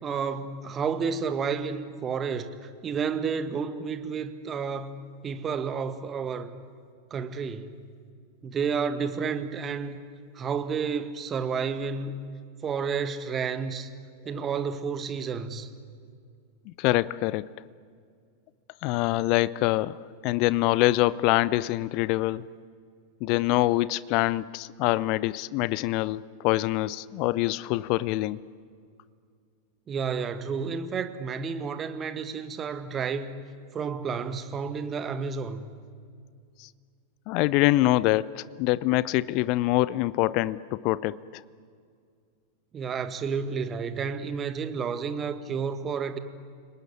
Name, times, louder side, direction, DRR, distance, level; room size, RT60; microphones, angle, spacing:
voice 1, 0.0-6.5 7.1-7.8 8.4-10.0 10.4-12.2 12.6-13.9 14.3-15.7 29.9-33.4 33.7-35.7 42.7-46.2, right 6 dB, 25° right, 11 dB, 1.8 m, -31 dB
voice 2, 16.7-17.5 18.8-20.0 20.2-22.5 23.2-28.4 36.6-36.7 37.3-41.4, left 18 dB, 45° left, 21 dB, 0.6 m, -25 dB
29.5 x 19.5 x 9.8 m, 2.2 s
figure-of-eight pair, 90°, 0 cm